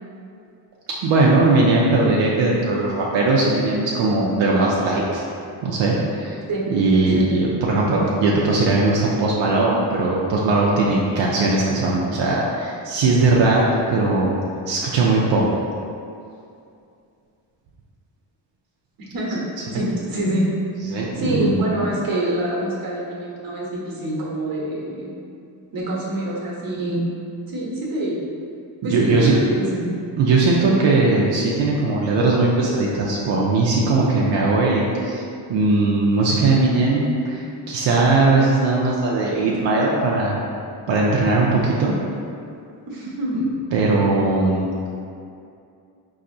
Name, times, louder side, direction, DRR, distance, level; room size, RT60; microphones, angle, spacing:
voice 1, 1.0-5.2 5.6-6.4 6.7-14.4 14.7-15.5 19.7-19.8 20.9-21.5 28.8-29.3 30.2-35.2 35.5-40.4 40.9-41.9 43.7-44.9, right 3 dB, 85° right, -4 dB, 0.6 m, -19 dB
voice 2, 19.7-20.5 21.2-25.1 25.7-27.1 27.5-28.2 28.8-29.9 42.9-43.4, right 1 dB, 50° right, -4 dB, 1.0 m, -25 dB
4.1 x 2.7 x 2.6 m, 2.5 s
cardioid pair, 90°, 44 cm